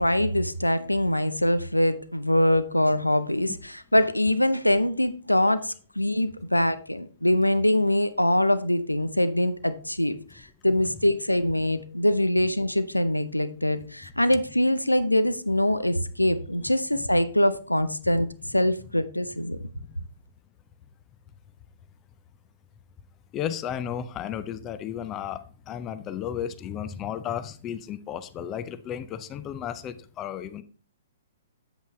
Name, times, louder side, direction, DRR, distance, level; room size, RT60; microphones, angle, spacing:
voice 1, 0.0-19.6, left 1 dB, 90° left, 0.6 m, -23 dB
voice 2, 23.3-30.6, left 9 dB, 25° left, 0.5 m, -34 dB
8.1 x 8.0 x 3.2 m
figure-of-eight pair, 115°, 0 cm